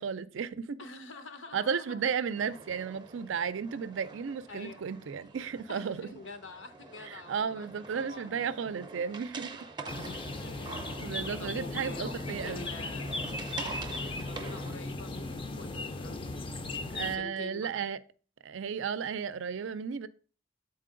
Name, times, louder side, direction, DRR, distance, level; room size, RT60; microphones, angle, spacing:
voice 1, 0.0-0.8 1.5-6.0 7.0-9.5 10.8-12.7 16.9-18.0 18.4-20.1, right 6 dB, 75° right, 0.4 m, -34 dB
voice 2, 0.8-2.0 4.5-4.8 5.7-8.5 8.8-8.9 9.8-10.0 10.4-10.9 11.4-13.1 13.7-16.3 17.0-17.8, left 3 dB, 75° left, 0.9 m, -47 dB
sound 1, 2.3-14.7, right 4 dB, 25° right, 0.6 m, -46 dB
sound 2, 9.9-17.2, left 2 dB, 25° left, 0.5 m, -37 dB
7.5 x 4.2 x 3.7 m
head